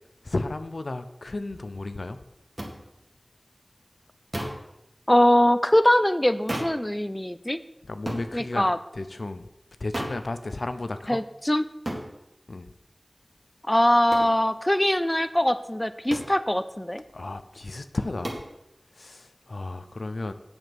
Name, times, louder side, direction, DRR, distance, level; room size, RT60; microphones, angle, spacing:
voice 1, 0.2-2.2 7.9-8.7 8.9-9.5 9.8-11.2 12.5-12.7 17.1-18.4 19.0-20.3, left 2 dB, 85° left, 10 dB, 0.6 m, -33 dB
sound 1, 2.6-2.7 4.3-4.7 6.5-6.8 8.1-8.3 9.9-10.2 11.9-12.1 14.1-14.3 16.1-16.4 18.2-18.5, right 1 dB, 50° right, 2.0 m, -32 dB
voice 2, 5.1-7.6 8.3-8.8 11.1-11.6 13.7-17.0, left 1 dB, 20° left, 12 dB, 0.5 m, -22 dB
7.9 x 7.2 x 6.0 m, 0.88 s
wide cardioid pair, 45°, 0 cm